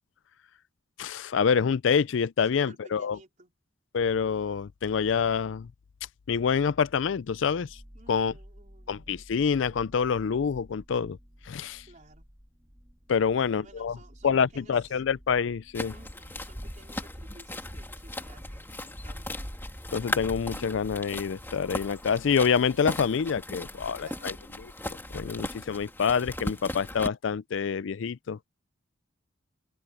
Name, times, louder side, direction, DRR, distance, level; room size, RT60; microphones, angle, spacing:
voice 1, 1.0-3.2 3.9-5.7 6.3-7.8 8.1-8.3 8.9-11.2 11.5-11.8 13.1-14.0 14.2-15.9 19.9-24.3 25.1-28.4, left 6 dB, 70° left, 0.4 m, -26 dB
voice 2, 2.4-3.5 7.9-9.0 11.9-12.3 13.3-15.0 15.9-19.5 23.8-24.4, right 2 dB, 40° right, 4.6 m, -55 dB
sound 1, 7.7-24.1, equal, 15° right, 3.6 m, -54 dB
sound 2, 15.7-27.1, left 1 dB, 10° left, 2.6 m, -37 dB
head